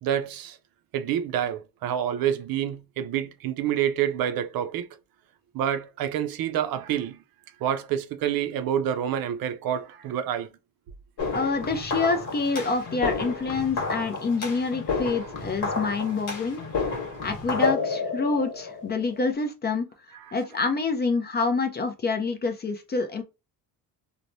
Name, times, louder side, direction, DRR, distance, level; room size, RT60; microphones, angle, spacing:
voice 1, 0.0-0.6 0.9-4.9 5.5-7.2 7.6-10.5 17.0-17.1 20.1-20.4, right 10 dB, 65° right, 0.5 m, -28 dB
sound 1, 11.2-19.3, left 4 dB, 55° left, 1.2 m, -30 dB
voice 2, 11.3-16.6 17.2-19.9 20.3-23.2, left 4 dB, 25° left, 0.5 m, -27 dB
3.2 x 2.1 x 2.6 m
cardioid pair, 130°, 39 cm